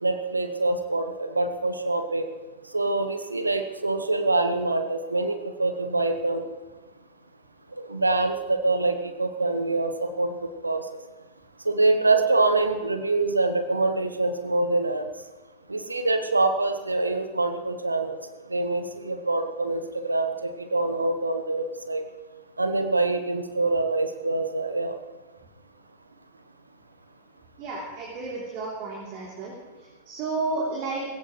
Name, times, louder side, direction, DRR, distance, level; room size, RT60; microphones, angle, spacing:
voice 1, 0.0-2.3 2.7-6.4 7.8-10.8 11.6-15.1 15.7-18.2 18.5-22.0 22.6-24.9, right 2 dB, 80° right, 8 dB, 1.0 m, -25 dB
voice 2, 27.6-29.5 30.1-31.0, right 3 dB, 45° right, -4 dB, 3.3 m, -31 dB
18.5 x 17.0 x 3.2 m, 1.3 s
figure-of-eight pair, 90°, 0 cm